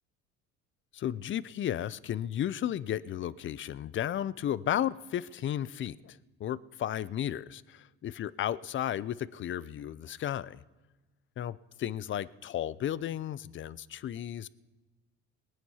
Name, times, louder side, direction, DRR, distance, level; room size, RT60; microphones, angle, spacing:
voice 1, 0.9-10.6 11.4-14.5, left 11 dB, 40° left, 0.5 m, -34 dB
19.0 x 9.2 x 5.7 m
supercardioid pair, 85°, 30 cm